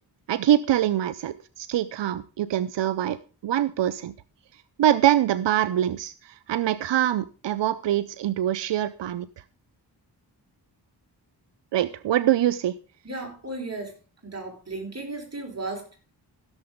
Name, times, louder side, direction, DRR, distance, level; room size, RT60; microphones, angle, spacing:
voice 1, 0.3-3.2 3.4-4.1 4.8-9.3 11.7-12.8, right 12 dB, 90° right, 0.6 m, -24 dB
voice 2, 13.0-13.9 14.2-16.1, right 2 dB, 35° right, 4.5 m, -35 dB
15.5 x 6.9 x 5.0 m
cardioid pair, 60°, 42 cm